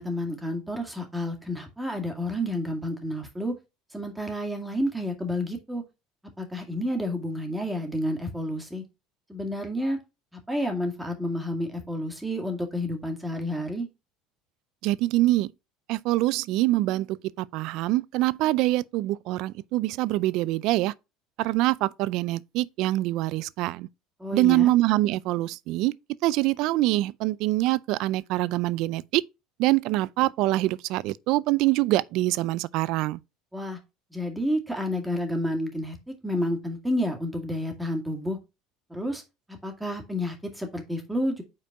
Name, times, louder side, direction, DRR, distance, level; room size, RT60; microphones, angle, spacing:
voice 1, 0.0-3.5 3.9-5.8 6.4-8.8 9.3-10.0 10.5-13.9 24.2-24.7 33.5-33.8 34.1-38.4 38.9-39.2 39.6-41.4, left 1 dB, 5° right, 2.0 m, -30 dB
voice 2, 14.8-15.5 15.9-20.9 21.4-23.9 24.3-25.9 26.2-29.2 29.6-33.2, right 17 dB, 65° right, 0.4 m, -24 dB
5.4 x 4.4 x 4.7 m
supercardioid pair, 105°, 0 cm